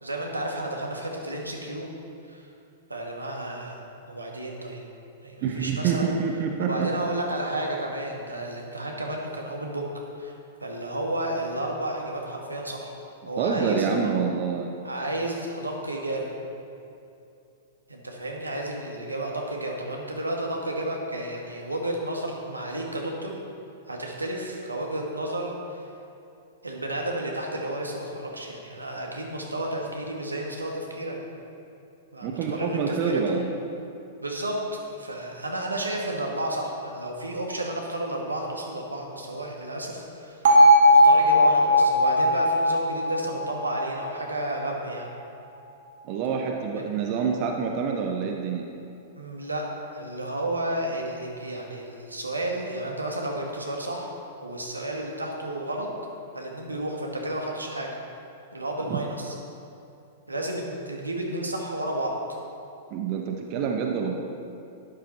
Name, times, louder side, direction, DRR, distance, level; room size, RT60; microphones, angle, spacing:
voice 1, 0.0-1.9 2.3-2.5 2.9-3.8 4.1-4.9 5.2-6.2 6.6-9.9 10.2-10.3 10.6-12.9 13.2-14.1 14.8-16.4 17.9-23.4 23.9-25.9 26.6-31.2 32.1-33.4 34.2-40.4 40.9-45.1 49.1-54.1 54.4-55.9 56.3-57.9 58.5-59.3 60.3-62.2, right 1 dB, 85° right, 0 dB, 1.8 m, -32 dB
voice 2, 5.4-6.9 13.4-14.7 32.2-33.5 46.0-48.7 58.9-59.0 62.9-64.2, right 6 dB, 40° right, 2 dB, 1.0 m, -27 dB
Bell, 40.4-44.5, equal, 60° right, 2.1 m, -18 dB
12.5 x 10.5 x 4.1 m, 2.7 s
figure-of-eight pair, 100°, 0 cm